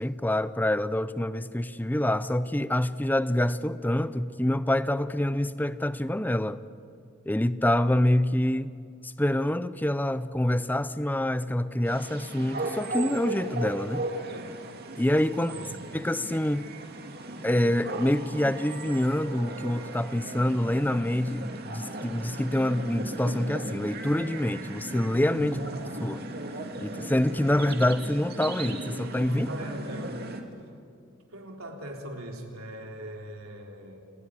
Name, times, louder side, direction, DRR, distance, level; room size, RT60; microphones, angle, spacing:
voice 1, 0.0-6.6 7.3-8.7 9.0-14.1 15.0-15.5 15.9-16.7 17.4-25.6 26.0-26.2 26.8-29.5, left 1 dB, 10° left, 0.6 m, -26 dB
sound 1, 11.8-30.4, right 2 dB, 50° right, 2.3 m, -37 dB
voice 2, 15.2-16.1 25.2-25.7 29.2-30.3 31.3-34.0, right 1 dB, 85° right, 3.6 m, -39 dB
28.0 x 17.5 x 9.9 m
head